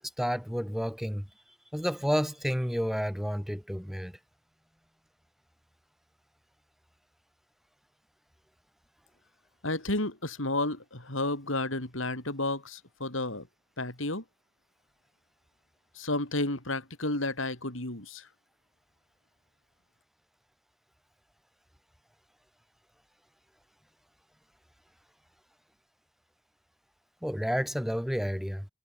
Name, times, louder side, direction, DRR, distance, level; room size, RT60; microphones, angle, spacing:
voice 1, 0.2-1.3 1.7-4.2 27.2-28.7, equal, ahead, 5.7 m, -30 dB
voice 2, 9.6-13.5 13.8-14.2 16.0-18.3, left 2 dB, 80° left, 5.4 m, -32 dB
head